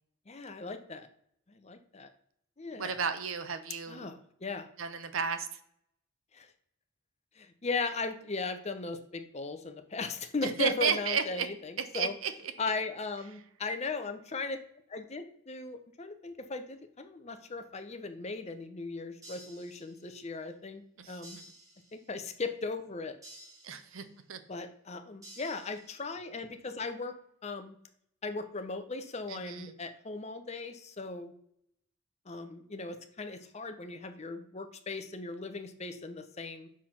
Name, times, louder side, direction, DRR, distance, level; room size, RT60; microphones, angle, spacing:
voice 1, 0.3-1.1 1.5-2.1 2.6-3.0 3.9-4.7 6.3-6.5 7.4-12.1 12.6-14.6 14.9-21.4 21.9-23.1 24.5-27.1 27.4-27.8 28.2-31.3 32.3-36.7, left 3 dB, 30° left, 8 dB, 0.7 m, -38 dB
voice 2, 2.7-4.1 4.8-5.6 10.4-11.5 11.8-12.5 21.0-21.4 23.6-24.4 29.3-29.7, right 6 dB, 80° right, 10 dB, 0.8 m, -33 dB
sound 1, 19.2-20.3 21.2-22.3 23.2-24.3 25.2-26.3, right 1 dB, 15° right, 2.0 m, -54 dB
5.9 x 4.9 x 5.7 m, 0.69 s
head